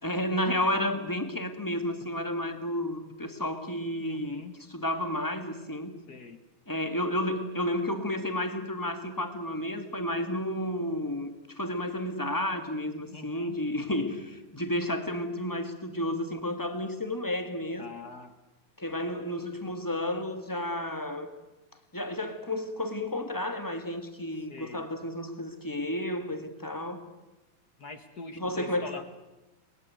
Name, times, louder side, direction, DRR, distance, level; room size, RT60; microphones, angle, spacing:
voice 1, 0.0-4.4 4.7-6.0 6.7-17.8 18.8-21.3 21.9-27.0 28.4-28.9, left 1 dB, 10° left, 1.1 m, -31 dB
voice 2, 4.0-4.6 6.1-6.4 13.1-13.6 17.8-18.3 24.5-24.9 27.8-29.0, left 4 dB, 50° left, 1.1 m, -43 dB
29.5 x 21.5 x 9.5 m
omnidirectional pair, 3.8 m